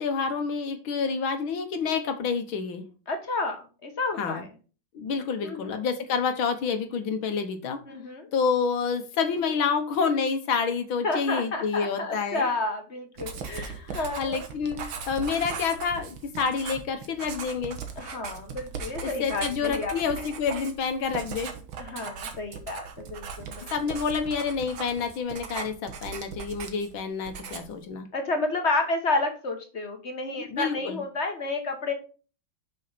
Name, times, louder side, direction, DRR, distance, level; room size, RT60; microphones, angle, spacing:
voice 1, 0.0-2.8 4.2-4.4 4.9-7.8 8.3-12.5 13.5-17.8 19.0-21.6 23.7-28.1 30.4-31.0, left 5 dB, 75° left, 1.9 m, -28 dB
voice 2, 3.1-4.5 5.4-5.8 7.8-8.3 11.0-14.4 18.0-20.3 21.8-23.7 28.1-31.9, left 2 dB, 35° left, 1.4 m, -30 dB
Writing, 13.2-27.0 27.3-27.8, right 6 dB, 80° right, 2.1 m, -38 dB
6.6 x 6.5 x 4.1 m
omnidirectional pair, 2.2 m